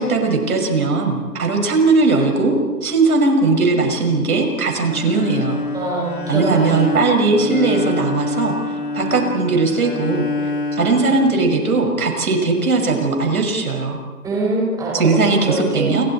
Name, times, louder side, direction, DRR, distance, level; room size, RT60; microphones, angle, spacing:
voice 1, 0.0-2.6 2.8-5.6 6.3-8.5 8.9-10.2 10.7-14.0 14.9-16.0, right 3 dB, 70° right, 3 dB, 6.3 m, -18 dB
Bowed string instrument, 4.8-11.9, left 2 dB, 60° left, 7.5 m, -27 dB
voice 2, 5.7-6.8 14.2-15.1 15.4-15.9, right 2 dB, 10° right, -3 dB, 5.1 m, -23 dB
28.5 x 25.5 x 4.4 m, 1.4 s
hypercardioid pair, 160°, 45 cm